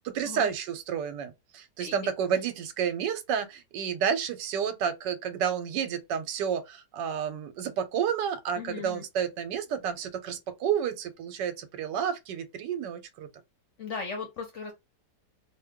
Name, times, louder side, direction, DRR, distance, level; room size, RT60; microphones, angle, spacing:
voice 1, 0.0-13.3, right 8 dB, 90° right, 1.2 m, -30 dB
voice 2, 8.6-9.0 13.8-14.7, left 5 dB, 65° left, 0.7 m, -37 dB
2.8 x 2.2 x 3.4 m
omnidirectional pair, 1.8 m